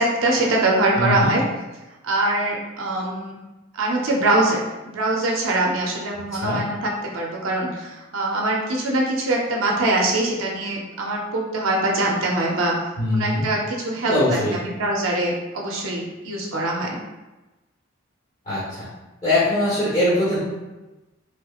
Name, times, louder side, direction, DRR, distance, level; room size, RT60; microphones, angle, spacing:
voice 1, 0.0-1.4 2.0-3.4 3.7-12.8 13.1-14.4 14.6-17.0, right 2 dB, 80° right, -2 dB, 0.6 m, -23 dB
voice 2, 0.9-1.4 6.4-6.6 13.0-13.5 14.0-14.6 18.5-18.9 19.2-20.4, left 1 dB, 30° left, -11 dB, 1.0 m, -22 dB
3.2 x 2.9 x 2.3 m, 1.1 s
head